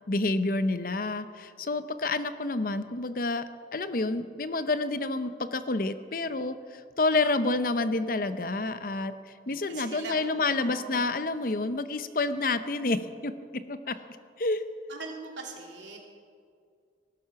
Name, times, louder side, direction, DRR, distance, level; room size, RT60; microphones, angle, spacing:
voice 1, 0.1-3.4 3.7-9.1 9.5-14.0 14.4-14.6, left 2 dB, 50° left, 11 dB, 0.7 m, -29 dB
voice 2, 9.5-11.1 11.5-11.7 13.9-14.0 14.9-16.0, right 3 dB, 90° right, 1 dB, 2.8 m, -42 dB
19.5 x 11.5 x 5.9 m, 2.2 s
head